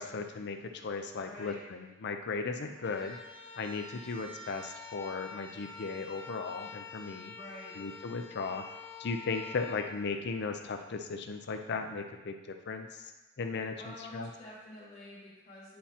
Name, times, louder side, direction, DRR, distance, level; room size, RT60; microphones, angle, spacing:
voice 1, 0.0-3.2 3.5-7.3 7.8-8.6 9.0-13.0 13.4-13.7 14.1-14.3, left 4 dB, 55° left, 5 dB, 0.5 m, -36 dB
voice 2, 1.2-1.6 7.4-7.8 13.8-15.8, left 1 dB, 40° left, -9 dB, 2.1 m, -48 dB
sound 1, 2.7-10.9, left 4 dB, 85° left, 1.7 m, -47 dB
10.0 x 4.2 x 2.9 m, 1.1 s
head